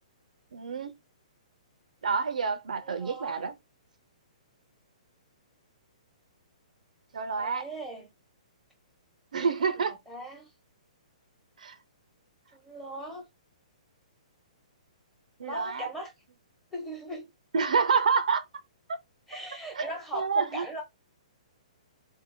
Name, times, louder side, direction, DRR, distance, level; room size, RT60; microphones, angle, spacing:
voice 1, 0.5-1.0 2.0-3.6 7.1-7.6 9.3-10.0 11.6-11.7 15.4-15.9 17.5-18.4 19.7-20.7, right 5 dB, 80° right, 0.5 m, -28 dB
voice 2, 2.8-3.5 7.4-8.1 9.8-10.5 12.5-13.3 15.4-16.1 16.7-17.3 19.3-20.8, right 1 dB, 5° left, 1.1 m, -39 dB
2.6 x 2.0 x 2.6 m
hypercardioid pair, 135°, 4 cm